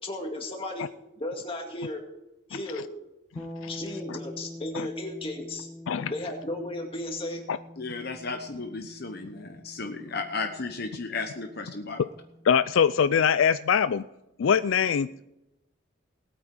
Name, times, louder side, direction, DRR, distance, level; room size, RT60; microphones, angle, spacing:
voice 1, 0.0-2.1 2.5-2.9 3.7-5.7 6.1-7.5, left 1 dB, 25° left, 2 dB, 2.2 m, -35 dB
voice 2, 3.4-3.7 4.1-4.2 4.7-4.9 5.9-6.1 7.5-7.6 12.4-14.1 14.4-15.3, left 7 dB, 70° left, 14 dB, 0.4 m, -23 dB
sound 1, 3.4-13.1, left 1 dB, 5° right, 1.9 m, -45 dB
voice 3, 7.8-12.0, left 3 dB, 50° left, 5 dB, 1.0 m, -34 dB
19.5 x 8.9 x 4.7 m, 0.92 s
head